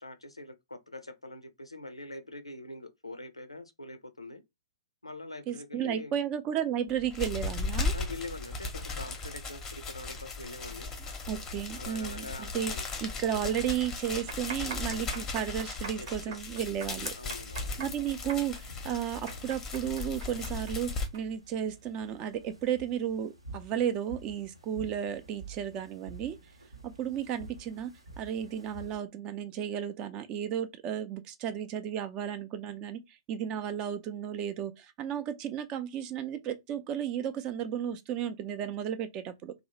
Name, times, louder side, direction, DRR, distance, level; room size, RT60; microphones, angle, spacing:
voice 1, 0.0-4.4 5.0-6.1 7.9-10.9 11.8-12.8 16.0-16.4 17.2-17.8, left 2 dB, 90° left, 0.4 m, -44 dB
voice 2, 5.5-7.9 11.3-12.7 13.0-17.1 17.8-26.4 26.8-33.0 33.3-39.5, right 9 dB, 30° right, 0.4 m, -33 dB
sound 1, 6.9-21.1, left 3 dB, 15° left, 0.6 m, -37 dB
sound 2, 14.1-21.2 21.5-21.6 22.3-22.6, right 4 dB, 45° right, 0.8 m, -42 dB
sound 3, 18.5-29.0, right 3 dB, 85° right, 0.7 m, -50 dB
2.6 x 2.0 x 2.9 m
figure-of-eight pair, 115°, 3 cm